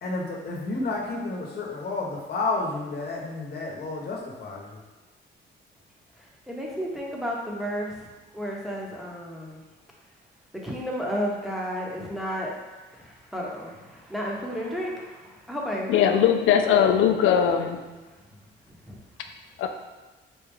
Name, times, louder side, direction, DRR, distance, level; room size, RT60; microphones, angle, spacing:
voice 1, 0.0-4.8, left 3 dB, 55° left, -1 dB, 1.0 m, -31 dB
voice 2, 6.2-8.1 8.3-9.6 10.6-12.5 12.9-16.2 18.9-19.0, equal, ahead, -3 dB, 0.9 m, -32 dB
voice 3, 15.9-17.8 19.6-19.7, left 8 dB, 80° left, 6 dB, 0.4 m, -20 dB
4.2 x 2.3 x 3.5 m, 1.2 s
cardioid pair, 90°, 20 cm